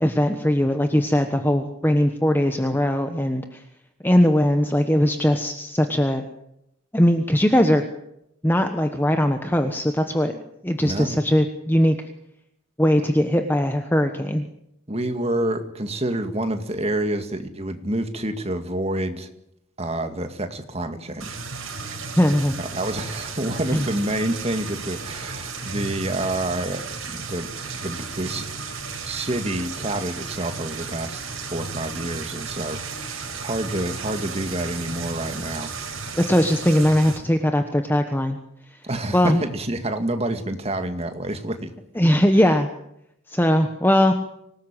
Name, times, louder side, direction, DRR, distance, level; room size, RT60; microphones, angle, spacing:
voice 1, 0.0-3.6 4.0-6.2 6.9-7.8 8.4-10.3 10.6-12.0 12.8-14.5 22.1-22.6 23.7-23.8 36.1-38.4 39.1-39.4 42.0-42.7 43.3-44.1, equal, 10° left, 6 dB, 1.2 m, -20 dB
voice 2, 10.8-11.2 14.9-19.3 19.8-21.4 22.6-26.8 27.1-28.5 29.0-35.7 38.8-41.7, right 1 dB, 30° right, 7 dB, 2.2 m, -28 dB
sound 1, 21.2-37.2, right 4 dB, 75° right, 4.8 m, -34 dB
25.5 x 18.5 x 9.1 m, 0.82 s
head